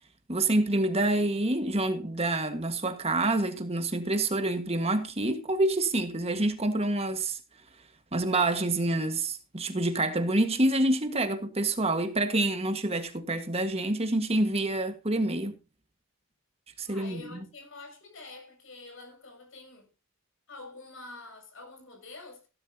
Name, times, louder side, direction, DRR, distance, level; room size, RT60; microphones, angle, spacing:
voice 1, 0.3-7.4 8.1-15.5 16.8-17.4, right 2 dB, 30° right, 1.6 m, -27 dB
voice 2, 16.9-19.9 20.5-22.5, left 3 dB, 60° left, 7.6 m, -47 dB
16.5 x 12.0 x 2.8 m
head